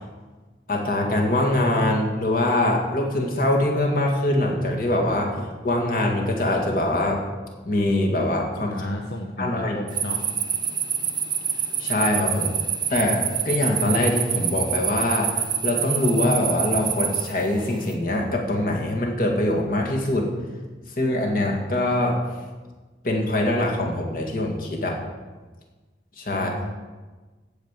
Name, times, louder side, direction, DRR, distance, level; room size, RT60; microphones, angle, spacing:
voice 1, 0.7-7.2 7.6-8.7 9.4-9.8 11.8-12.5 12.9-20.3 21.0-22.2 23.0-25.0 26.2-26.6, left 1 dB, 50° left, 0 dB, 2.1 m, -23 dB
voice 2, 8.6-10.2 26.3-26.7, left 1 dB, 70° left, 0 dB, 1.0 m, -33 dB
sound 1, 9.9-17.9, right 8 dB, 25° right, 0.8 m, -27 dB
15.0 x 5.3 x 7.4 m, 1.3 s
head